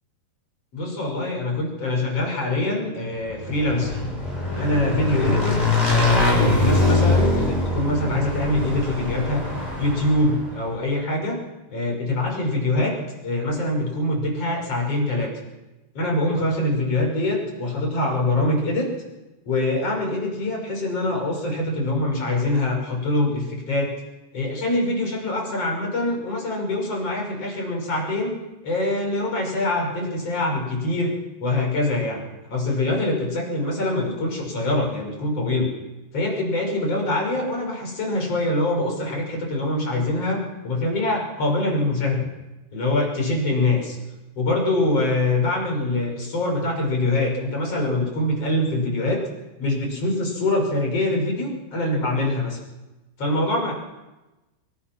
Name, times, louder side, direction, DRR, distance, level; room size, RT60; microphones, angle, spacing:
voice 1, 0.7-4.0 4.5-11.4 11.7-13.0 13.2-15.3 15.9-18.9 19.5-23.9 24.3-28.4 28.6-32.2 32.5-35.7 36.1-42.3 42.7-44.0 44.4-49.2 49.6-52.6 53.2-53.7, left 2 dB, 35° left, 2 dB, 6.6 m, -24 dB
Motorcycle / Engine, 3.3-10.6, left 2 dB, 10° left, 7.1 m, -23 dB
25.5 x 23.5 x 6.1 m, 1.0 s
omnidirectional pair, 4.7 m